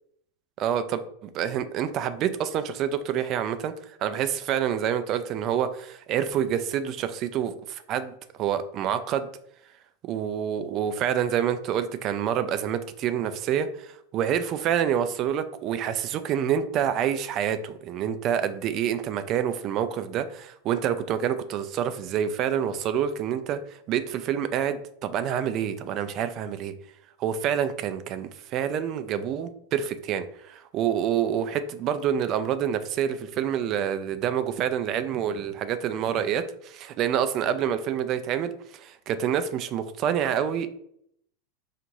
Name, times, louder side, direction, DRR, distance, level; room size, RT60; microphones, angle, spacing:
voice 1, 0.6-3.7 4.0-8.1 8.4-9.3 10.0-26.7 27.2-40.7, right 9 dB, 40° right, 11 dB, 0.4 m, -27 dB
4.6 x 2.4 x 3.9 m, 0.70 s
supercardioid pair, 135°, 0 cm